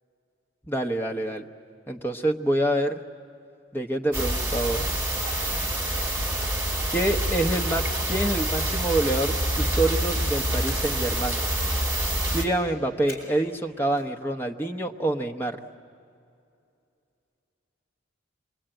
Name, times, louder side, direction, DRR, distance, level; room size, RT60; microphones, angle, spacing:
voice 1, 0.7-1.4 1.9-3.0 3.7-4.9 6.9-11.4 12.3-15.6, right 1 dB, 10° left, 3 dB, 0.9 m, -26 dB
sound 1, 4.1-12.5, right 1 dB, 10° right, 2.7 m, -26 dB
Splash splatter, 6.9-8.0 8.6-9.8 10.7-11.9 13.1-13.6 13.8-14.0, left 2 dB, 45° left, 6.6 m, -48 dB
26.5 x 21.0 x 9.0 m, 2.6 s
head